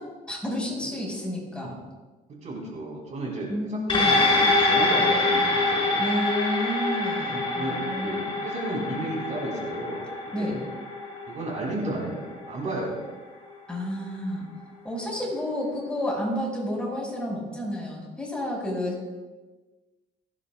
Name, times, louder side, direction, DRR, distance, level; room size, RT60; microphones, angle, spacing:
voice 1, 0.0-1.8 3.5-4.2 6.0-8.3 10.3-10.6 13.7-14.5 14.8-19.1, left 1 dB, 5° left, -3 dB, 5.2 m, -31 dB
voice 2, 2.4-6.0 7.3-10.5 11.3-13.0, right 1 dB, 45° right, -2 dB, 4.3 m, -33 dB
sound 1, 3.9-12.6 13.0-13.1, left 2 dB, 35° left, 4.8 m, -25 dB
28.0 x 11.0 x 2.4 m, 1.2 s
cardioid pair, 110°, 17 cm